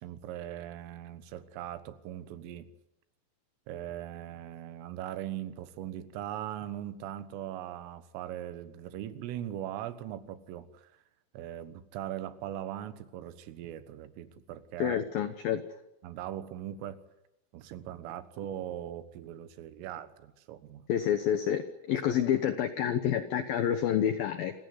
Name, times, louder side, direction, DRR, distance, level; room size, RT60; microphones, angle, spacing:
voice 1, 0.0-2.7 3.7-10.9 11.3-15.0 16.0-17.0 17.5-20.9, right 11 dB, 85° right, 12 dB, 3.9 m, -40 dB
voice 2, 14.8-15.6 20.9-21.6 21.9-24.5, left 9 dB, 80° left, 9 dB, 2.1 m, -28 dB
28.0 x 16.0 x 9.5 m, 0.89 s
omnidirectional pair, 5.8 m